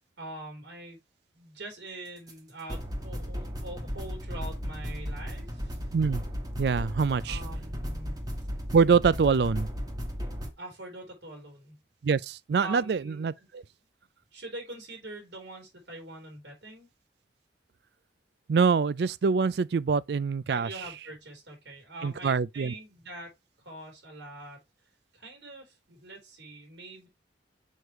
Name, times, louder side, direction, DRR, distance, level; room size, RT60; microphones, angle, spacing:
voice 1, 0.2-1.0 1.3-5.8 7.3-8.2 10.6-11.8 12.6-13.3 14.3-16.9 20.5-23.3 23.6-24.6 25.1-27.1, right 2 dB, 85° right, 3.4 m, -44 dB
sound 1, 2.3-2.4 2.7-10.5, equal, 20° right, 1.2 m, -35 dB
voice 2, 6.6-7.4 8.7-9.7 12.0-13.6 18.5-20.7 22.0-22.7, right 5 dB, 60° right, 0.4 m, -25 dB
6.4 x 4.9 x 3.0 m
head